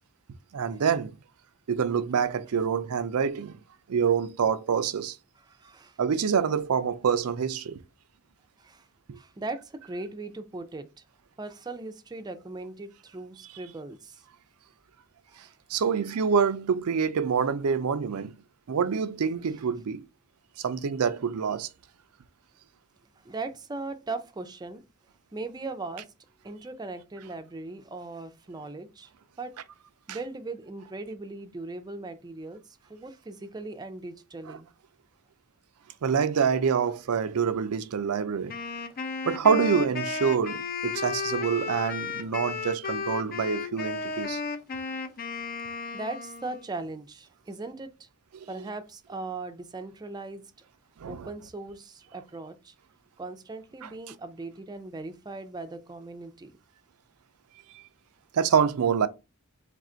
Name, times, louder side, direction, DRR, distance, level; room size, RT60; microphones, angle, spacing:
voice 1, 0.5-1.2 1.7-3.6 3.9-5.2 6.0-7.8 9.1-9.2 15.7-18.3 18.7-20.0 20.6-21.7 34.5-34.6 36.0-38.5 39.3-44.4 48.3-48.5 51.0-51.3 53.8-53.9 57.7-57.8 58.3-59.1, right 6 dB, 85° right, 0.4 m, -26 dB
voice 2, 5.5-6.0 8.6-8.9 9.1-10.9 11.4-14.2 15.3-15.8 23.2-24.8 25.3-26.1 26.4-29.1 29.4-29.5 30.1-34.7 45.9-48.1 48.5-50.4 51.1-52.7 53.2-56.5, right 3 dB, 20° right, 0.4 m, -39 dB
Wind instrument woodwind instrument, 38.5-46.7, left 4 dB, 45° left, 0.5 m, -34 dB
3.4 x 2.5 x 4.3 m
head